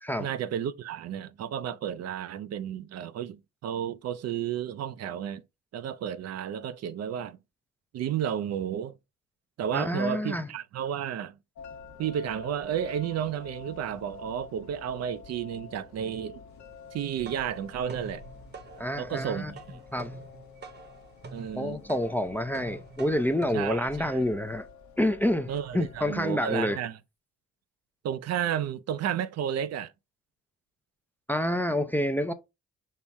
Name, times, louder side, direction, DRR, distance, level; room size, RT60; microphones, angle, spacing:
voice 1, 0.2-5.4 5.7-7.4 7.9-8.9 9.6-11.4 12.0-16.4 16.9-18.2 19.0-19.8 21.3-21.8 23.5-24.2 25.5-27.0 28.0-29.9, right 9 dB, 55° right, 0.4 m, -32 dB
voice 2, 9.7-10.5 18.8-19.5 19.9-20.1 21.6-24.6 25.0-26.8 31.3-32.3, left 1 dB, 5° left, 0.4 m, -28 dB
sound 1, 11.6-26.3, left 5 dB, 65° left, 0.9 m, -49 dB
sound 2, 16.9-24.7, right 3 dB, 35° right, 0.8 m, -46 dB
5.5 x 2.1 x 4.6 m
cardioid pair, 90°, 30 cm